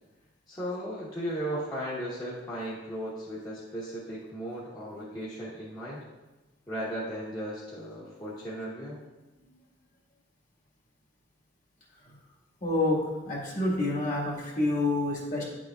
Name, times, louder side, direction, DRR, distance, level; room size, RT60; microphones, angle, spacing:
voice 1, 0.5-6.0 6.7-9.0, equal, 20° left, -8 dB, 1.0 m, -36 dB
voice 2, 12.6-13.0 13.2-15.4, left 2 dB, 45° left, -3 dB, 1.7 m, -27 dB
9.4 x 6.1 x 2.4 m, 1.1 s
head